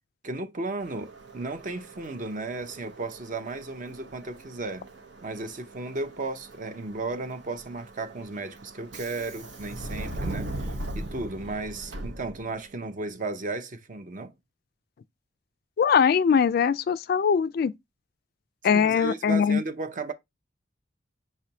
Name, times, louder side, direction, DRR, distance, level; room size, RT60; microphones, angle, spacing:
voice 1, 0.2-4.9 5.2-14.3 18.7-20.1, right 3 dB, 45° right, 0.6 m, -34 dB
Subway metro underground, 0.8-12.7, right 1 dB, 85° right, 0.9 m, -40 dB
voice 2, 15.8-17.7 18.6-19.6, left 6 dB, 55° left, 0.3 m, -21 dB
5.9 x 3.3 x 2.7 m
head